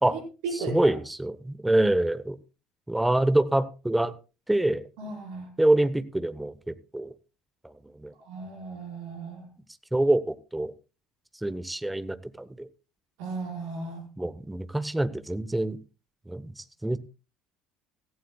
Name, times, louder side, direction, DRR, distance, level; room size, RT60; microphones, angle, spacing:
voice 1, 0.0-0.9 5.0-5.5 8.2-9.5 13.2-14.0, right 3 dB, 60° right, 1 dB, 4.8 m, -35 dB
voice 2, 0.7-2.4 2.9-4.1 4.5-4.8 5.6-7.1 8.0-8.1 9.9-10.7 11.4-12.7 14.2-15.8 16.3-17.0, right 1 dB, 5° right, 14 dB, 0.9 m, -25 dB
16.5 x 15.0 x 2.3 m, 0.32 s
figure-of-eight pair, 60°, 0 cm